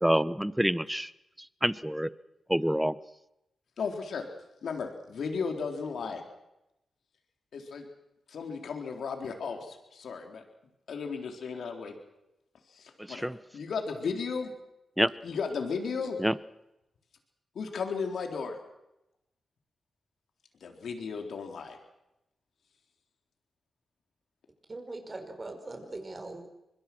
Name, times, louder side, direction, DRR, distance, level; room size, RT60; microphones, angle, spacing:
voice 1, 0.0-1.1 1.6-2.1 2.5-2.9 13.1-13.4 15.0-15.1 16.2-16.3, equal, 5° right, 17 dB, 1.0 m, -26 dB
voice 2, 3.8-4.2 4.6-6.2 7.5-7.8 8.3-10.4 10.9-11.9 12.7-13.3 13.5-14.5 15.2-16.2 17.5-18.6 20.6-21.8, left 5 dB, 75° left, 4 dB, 4.1 m, -35 dB
voice 3, 24.7-26.5, right 2 dB, 35° right, 5 dB, 5.4 m, -41 dB
25.0 x 22.0 x 6.2 m, 0.87 s
cardioid pair, 55°, 0 cm